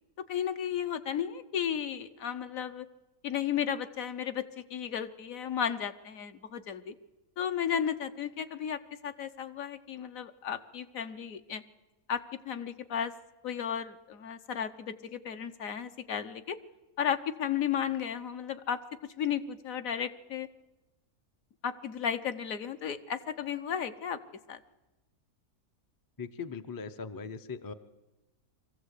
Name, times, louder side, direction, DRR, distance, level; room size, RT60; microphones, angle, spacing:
voice 1, 0.3-2.9 3.2-6.9 7.4-11.6 12.1-13.1 13.4-16.6 17.0-18.8 19.2-20.5 21.6-24.2 24.5-24.6, left 8 dB, 65° left, 10 dB, 1.2 m, -34 dB
voice 2, 26.2-27.7, left 5 dB, 35° left, 9 dB, 0.3 m, -40 dB
23.5 x 15.0 x 8.2 m, 1.1 s
omnidirectional pair, 1.6 m